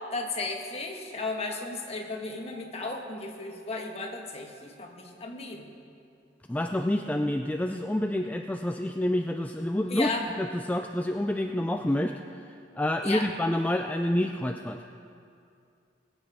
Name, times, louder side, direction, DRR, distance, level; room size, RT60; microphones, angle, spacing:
voice 1, 0.1-5.7 9.9-10.2 13.0-13.3, left 3 dB, 35° left, 2 dB, 1.4 m, -34 dB
voice 2, 6.5-10.1 10.4-14.9, left 1 dB, 10° left, 4 dB, 0.3 m, -28 dB
20.5 x 8.1 x 4.9 m, 2.5 s
head